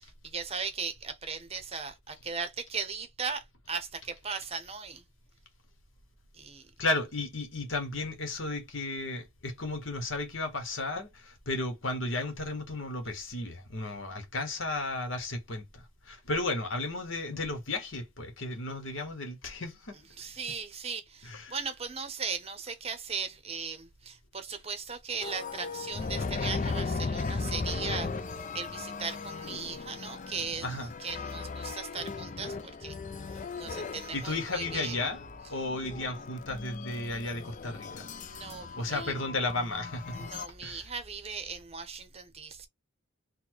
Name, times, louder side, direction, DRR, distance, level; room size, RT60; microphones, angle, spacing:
voice 1, 0.0-5.0 6.3-6.7 20.2-30.7 31.0-33.0 33.3-35.1 38.2-39.1 40.1-42.7, right 5 dB, 30° right, 0.7 m, -38 dB
voice 2, 6.8-20.0 21.2-21.5 30.6-30.9 34.1-35.2 35.5-38.1 38.8-40.2 40.6-40.8, left 2 dB, 65° left, 1.3 m, -34 dB
sound 1, 25.2-40.5, left 4 dB, 35° left, 0.4 m, -37 dB
4.1 x 2.2 x 4.5 m
head